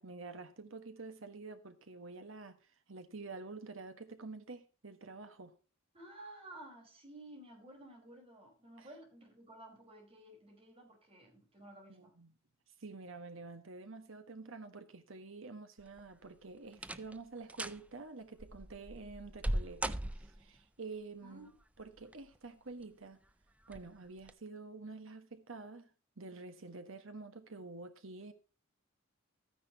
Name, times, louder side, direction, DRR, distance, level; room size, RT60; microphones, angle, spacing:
voice 1, 0.0-2.6 2.9-5.6 8.8-8.9 11.9-12.3 12.8-21.5 21.8-23.2 23.7-25.9 26.2-28.3, right 3 dB, 65° right, 1.4 m, -48 dB
voice 2, 5.9-12.1 21.2-21.5, right 1 dB, 30° right, 4.5 m, -54 dB
sound 1, 15.8-16.2 16.7-17.2 17.5-17.8 18.4-20.6 21.8-22.4 22.8-22.9 23.7-23.9 24.2-24.3, right 1 dB, 5° right, 0.4 m, -39 dB
13.5 x 9.7 x 2.9 m
head